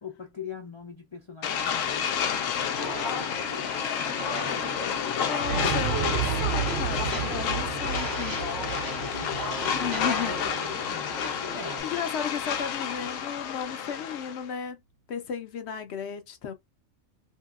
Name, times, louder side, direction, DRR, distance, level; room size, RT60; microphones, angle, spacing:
voice 1, 0.0-5.5 8.6-11.9, left 5 dB, 40° left, 0.4 m, -43 dB
sound 1, 1.4-14.5, left 8 dB, 90° left, 1.0 m, -30 dB
Walk footsteps, 2.8-11.8, right 1 dB, 25° right, 0.5 m, -36 dB
voice 2, 5.3-8.4 9.7-10.3 11.1-14.8 15.1-16.5, left 7 dB, 65° left, 0.8 m, -35 dB
Explosion, 5.4-11.4 11.8-11.9, right 10 dB, 70° right, 0.8 m, -33 dB
2.8 x 2.7 x 2.4 m
omnidirectional pair, 1.3 m